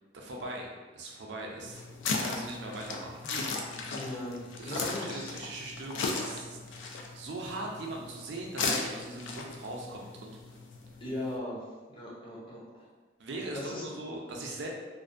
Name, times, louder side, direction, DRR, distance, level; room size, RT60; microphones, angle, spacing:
voice 1, 0.1-3.2 4.6-10.4 13.2-14.7, right 2 dB, 65° right, -1 dB, 0.5 m, -40 dB
sound 1, 1.6-11.4, left 4 dB, 80° left, 0.3 m, -37 dB
voice 2, 3.2-5.3 11.0-11.6 11.9-12.9 13.5-13.8, left 1 dB, 25° left, -5 dB, 0.5 m, -39 dB
2.5 x 2.1 x 2.5 m, 1.3 s
head